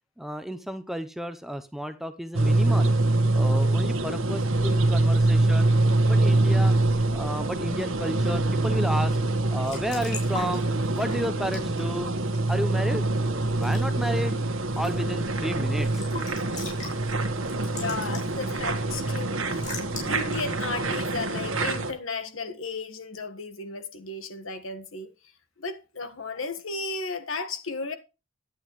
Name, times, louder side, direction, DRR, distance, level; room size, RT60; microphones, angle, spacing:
voice 1, 0.2-2.9 3.3-5.7 6.1-6.8 7.1-9.2 9.5-10.7 10.9-12.1 12.5-13.1 13.5-14.4 14.8-16.1, equal, ahead, 0.8 m, -32 dB
sound 1, 2.3-21.9, right 2 dB, 90° right, 1.5 m, -25 dB
Raindrop / Drip / Trickle dribble, 9.4-21.9, left 4 dB, 40° left, 6.7 m, -44 dB
voice 2, 17.7-19.7 20.1-25.1 25.6-27.9, left 3 dB, 80° left, 1.5 m, -34 dB
11.5 x 9.2 x 3.1 m
head